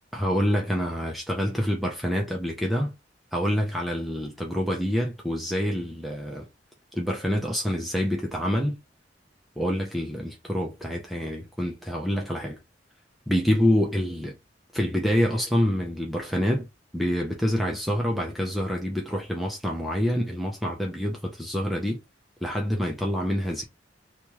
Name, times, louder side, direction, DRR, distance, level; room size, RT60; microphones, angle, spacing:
voice 1, 0.1-2.9 3.3-6.5 6.9-8.8 9.6-12.6 13.3-14.4 14.7-16.7 16.9-22.0 22.4-23.6, equal, ahead, 0.5 m, -26 dB
3.0 x 2.3 x 3.0 m
head